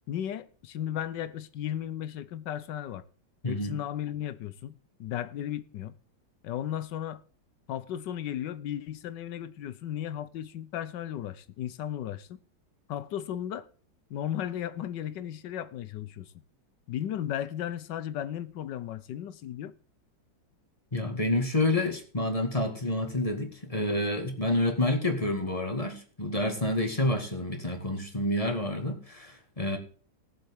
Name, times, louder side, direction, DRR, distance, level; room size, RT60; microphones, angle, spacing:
voice 1, 0.1-3.0 3.4-6.0 6.4-7.2 7.7-12.4 12.9-13.7 14.1-16.3 16.9-19.7 27.0-27.1, left 10 dB, 70° left, 1.4 m, -35 dB
voice 2, 3.4-3.8 20.9-29.8, left 1 dB, 20° left, 2.1 m, -28 dB
18.5 x 7.4 x 3.6 m
omnidirectional pair, 2.1 m